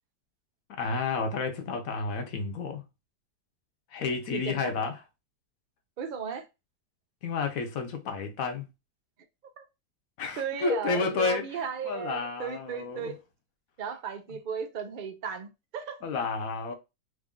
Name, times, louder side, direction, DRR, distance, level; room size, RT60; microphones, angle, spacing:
voice 1, 0.7-2.8 3.9-5.0 7.2-8.7 10.2-11.4 11.8-13.1 16.0-16.7, left 4 dB, 60° left, 1.1 m, -31 dB
voice 2, 4.3-4.7 6.0-6.5 9.6-9.7 10.4-13.2 13.8-16.0, right 7 dB, 80° right, 0.4 m, -35 dB
3.2 x 2.5 x 3.6 m
omnidirectional pair, 1.8 m